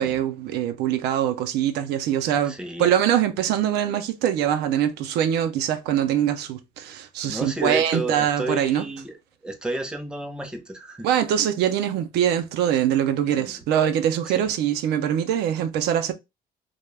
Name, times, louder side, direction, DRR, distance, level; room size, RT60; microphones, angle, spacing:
voice 1, 0.0-8.9 11.0-16.1, right 10 dB, 80° right, 0.4 m, -23 dB
voice 2, 2.4-2.9 7.2-9.2 9.4-11.1 13.3-13.5 14.3-14.5, right 1 dB, 5° right, 0.6 m, -31 dB
2.2 x 2.1 x 3.2 m
cardioid pair, 110°, 17 cm